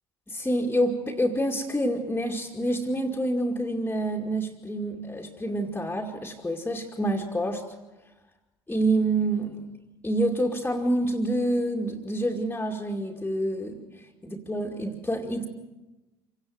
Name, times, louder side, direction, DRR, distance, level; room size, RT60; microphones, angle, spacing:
voice 1, 0.3-7.6 8.7-9.7 10.0-13.8 14.2-15.5, right 1 dB, 10° left, 0 dB, 2.4 m, -27 dB
26.5 x 18.0 x 7.9 m, 1.1 s
figure-of-eight pair, 60°, 14 cm